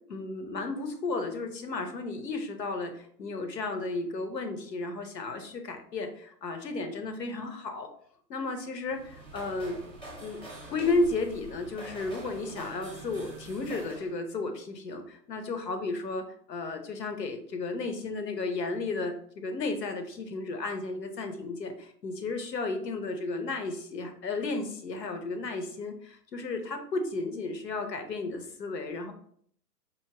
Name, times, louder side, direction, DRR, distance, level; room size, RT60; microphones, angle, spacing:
voice 1, 0.1-7.9 8.3-9.8 10.1-10.4 10.7-29.1, left 3 dB, 75° left, 6 dB, 1.0 m, -33 dB
sound 1, 8.8-14.1, right 2 dB, ahead, 0.8 m, -45 dB
4.5 x 2.8 x 2.8 m, 0.62 s
figure-of-eight pair, 125°, 49 cm